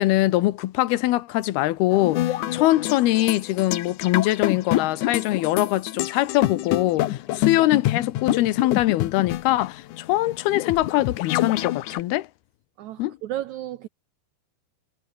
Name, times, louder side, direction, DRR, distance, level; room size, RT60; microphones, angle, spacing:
voice 1, 0.0-12.3 13.0-13.2, left 16 dB, 85° left, 2.8 m, -23 dB
sound 1, 1.9-12.0, left 14 dB, 70° left, 2.1 m, -27 dB
voice 2, 12.8-13.9, right 13 dB, 90° right, 1.6 m, -33 dB
omnidirectional pair, 4.5 m